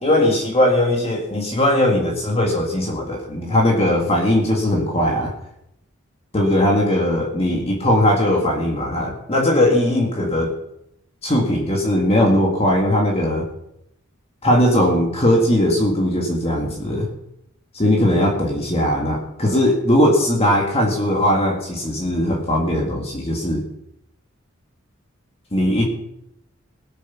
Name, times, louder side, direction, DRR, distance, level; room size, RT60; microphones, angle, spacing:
voice 1, 0.0-5.3 6.3-10.6 11.2-13.5 14.4-17.1 17.7-23.6 25.5-25.8, left 1 dB, 30° left, 0 dB, 1.9 m, -19 dB
18.0 x 8.2 x 5.9 m, 0.81 s
head